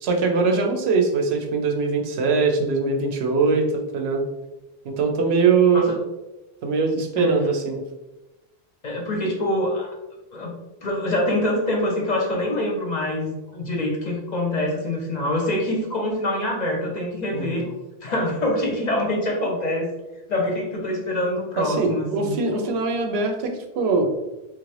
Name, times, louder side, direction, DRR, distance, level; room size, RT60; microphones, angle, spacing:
voice 1, 0.0-4.3 4.8-5.9 6.6-7.8 17.3-17.6 21.6-24.1, right 4 dB, 80° right, 3 dB, 0.8 m, -22 dB
voice 2, 8.8-10.0 10.3-17.7 18.0-19.9 20.3-22.4, left 1 dB, 50° left, 0 dB, 0.6 m, -25 dB
3.1 x 2.5 x 3.1 m, 1.0 s
omnidirectional pair, 1.1 m